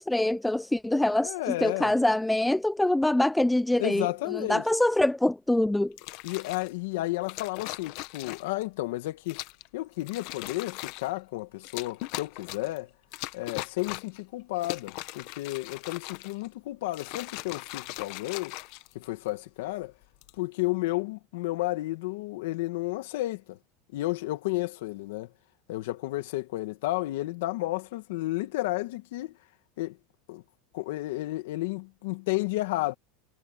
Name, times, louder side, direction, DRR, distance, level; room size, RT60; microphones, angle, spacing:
voice 1, 0.0-4.1 4.3-5.9, left 1 dB, 5° left, 0.3 m, -24 dB
voice 2, 1.2-1.9 3.8-4.7 6.2-9.4 9.7-12.9 13.3-18.5 18.9-19.9 20.4-23.6 23.9-25.3 25.7-29.4 29.8-30.0 30.3-30.4 30.7-32.9, left 18 dB, 65° left, 2.0 m, -32 dB
sound 1, 5.9-6.7 7.3-8.6 9.3-9.7 10.0-11.1 11.6-12.8 13.1-14.2 14.6-16.5 16.9-19.3 20.0-20.4, left 20 dB, 45° left, 1.0 m, -39 dB
supercardioid pair, 170°, 0 cm